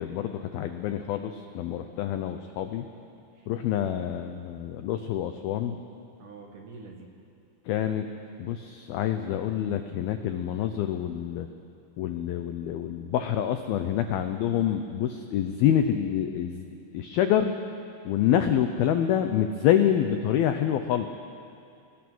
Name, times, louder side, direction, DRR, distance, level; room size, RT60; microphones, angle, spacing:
voice 1, 0.0-2.9 3.5-5.8 7.7-8.1 8.4-11.5 12.0-16.7 16.9-17.6 18.1-21.1, left 10 dB, 85° left, 7 dB, 2.1 m, -27 dB
voice 2, 6.2-7.1, right 4 dB, 55° right, 1 dB, 2.7 m, -46 dB
30.0 x 20.0 x 6.2 m, 2.5 s
omnidirectional pair, 5.4 m